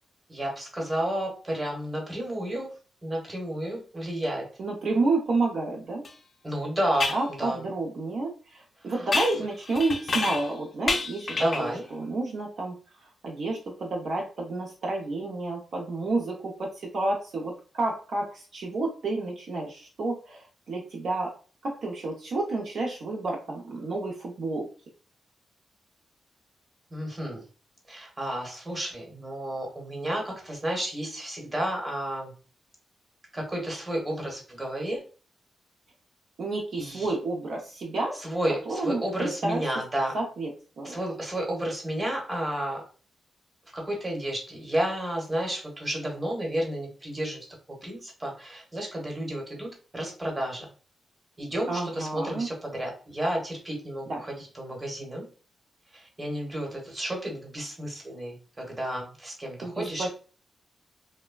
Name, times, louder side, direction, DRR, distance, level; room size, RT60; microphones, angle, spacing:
voice 1, 0.3-2.7 3.0-4.4 6.4-7.1 7.4-7.7 8.9-9.0 11.3-11.9 26.9-27.4 27.9-32.3 33.3-35.0 36.8-37.1 38.2-40.1 40.8-42.8 43.7-50.7 51.4-55.2 55.9-60.1, right 1 dB, 20° right, -1 dB, 1.0 m, -31 dB
voice 2, 4.6-6.1 7.1-12.7 13.2-21.3 21.6-24.7 36.4-38.2 38.7-39.7 40.1-40.5 40.8-41.0 51.7-52.5 54.1-54.2 59.6-60.1, right 2 dB, 65° right, -1 dB, 0.6 m, -30 dB
sound 1, 6.0-6.1 7.0-7.3 9.1-10.6 10.9-11.8, left 3 dB, 40° left, 0.4 m, -29 dB
3.2 x 2.1 x 2.2 m, 0.38 s
wide cardioid pair, 120°, 0 cm